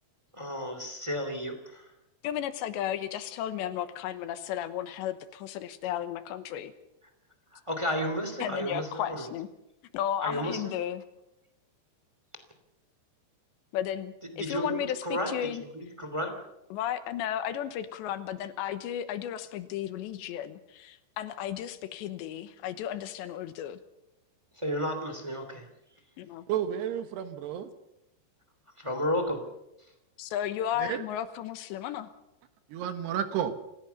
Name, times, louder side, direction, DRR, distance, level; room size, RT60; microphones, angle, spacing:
voice 1, 0.3-1.8 7.7-9.3 10.2-10.7 14.4-15.4 15.7-16.3 24.6-25.6 28.8-29.4, equal, 10° right, 6 dB, 1.6 m, -32 dB
voice 2, 2.2-6.7 8.4-9.5 9.9-11.0 13.7-15.6 16.7-23.8 26.2-26.4 30.2-32.1, left 10 dB, 80° left, 12 dB, 3.3 m, -34 dB
voice 3, 26.5-27.7 30.8-31.0 32.7-33.5, right 9 dB, 70° right, 9 dB, 3.2 m, -31 dB
27.5 x 16.0 x 7.1 m, 0.87 s
omnidirectional pair, 5.2 m